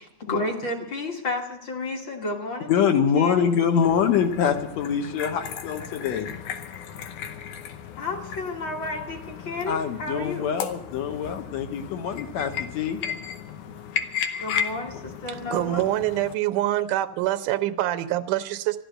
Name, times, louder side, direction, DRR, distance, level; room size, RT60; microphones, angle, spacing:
voice 1, 0.2-3.5 8.0-10.5 14.4-15.9, left 2 dB, 45° left, 2.0 m, -32 dB
voice 2, 2.7-6.3 9.7-13.0, left 7 dB, 70° left, 2.1 m, -24 dB
sound 1, 3.8-16.3, left 8 dB, 85° left, 2.4 m, -35 dB
voice 3, 15.5-18.8, right 14 dB, 85° right, 2.3 m, -25 dB
14.0 x 12.0 x 7.9 m
omnidirectional pair, 3.5 m